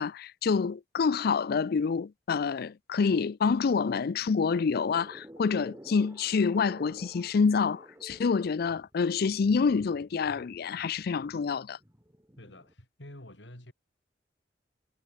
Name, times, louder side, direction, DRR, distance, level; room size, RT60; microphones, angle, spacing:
voice 1, 0.0-11.8, left 5 dB, 60° left, 0.4 m, -27 dB
sound 1, 4.1-12.7, equal, 15° right, 6.8 m, -52 dB
voice 2, 12.4-13.7, left 1 dB, 75° left, 6.5 m, -48 dB
head